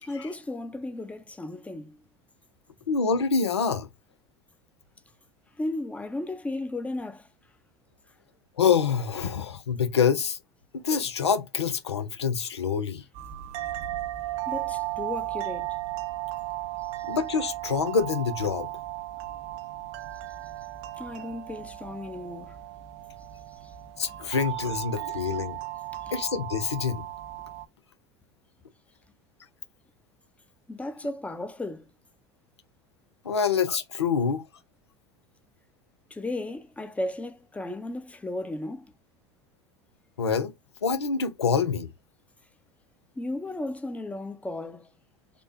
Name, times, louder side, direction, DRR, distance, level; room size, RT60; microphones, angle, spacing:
voice 1, 0.0-2.0 5.6-7.3 14.5-15.8 16.8-17.1 21.0-22.6 23.5-23.7 24.1-24.2 26.0-26.1 30.7-31.9 36.1-38.9 43.2-44.9, left 2 dB, 10° left, 0.6 m, -35 dB
voice 2, 2.9-3.9 8.6-10.4 10.8-13.0 17.1-18.7 24.0-25.6 26.1-27.1 33.3-34.4 40.2-40.5 40.8-41.9, left 6 dB, 90° left, 0.5 m, -26 dB
sound 1, 13.1-27.7, right 16 dB, 55° right, 0.5 m, -35 dB
3.3 x 2.2 x 3.4 m
hypercardioid pair, 75°, 14 cm